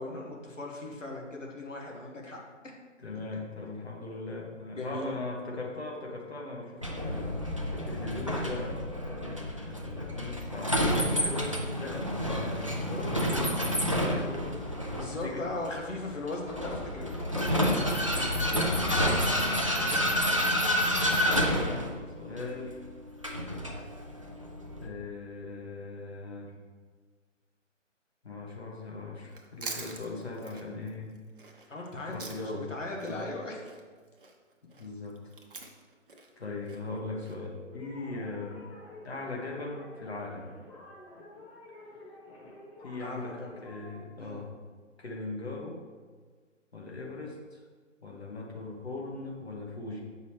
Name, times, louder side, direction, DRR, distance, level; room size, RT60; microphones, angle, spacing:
voice 1, 0.0-2.4 4.8-5.2 14.9-18.2 31.7-32.3 32.5-33.7 43.0-43.6 44.2-44.4, left 2 dB, 75° left, -1 dB, 1.4 m, -38 dB
voice 2, 3.0-7.4 7.7-8.8 9.2-15.4 18.6-18.9 19.2-20.1 21.0-21.9 22.2-22.8 24.8-26.5 28.2-31.2 32.1-32.7 33.1-33.3 34.6-35.2 36.4-38.7 39.0-40.5 42.8-44.6 45.0-45.8 46.7-47.6 48.0-50.0, left 3 dB, 55° left, -1 dB, 1.3 m, -39 dB
Vehicle, 6.8-24.9, equal, 30° right, 0.4 m, -29 dB
Chewing mastication, 29.3-32.7 33.0-37.3, right 4 dB, 45° right, 0.8 m, -45 dB
sound 1, 37.6-44.1, left 1 dB, 25° left, 1.6 m, -50 dB
7.8 x 5.4 x 3.2 m, 1.5 s
figure-of-eight pair, 145°, 38 cm